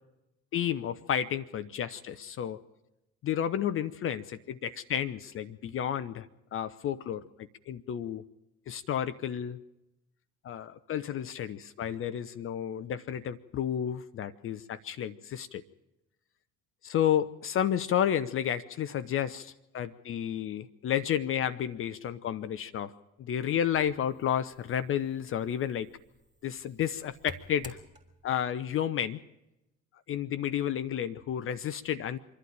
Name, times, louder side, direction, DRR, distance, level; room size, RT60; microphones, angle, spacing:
voice 1, 0.5-2.6 3.2-8.2 8.7-9.6 10.4-15.6 16.8-22.9 23.2-25.9 26.4-27.8 28.2-29.2 30.1-32.2, left 9 dB, 30° left, 12 dB, 0.8 m, -31 dB
sound 1, 23.7-28.4, equal, 10° right, 3.4 m, -53 dB
25.5 x 12.0 x 8.8 m, 0.92 s
figure-of-eight pair, 65°, 42 cm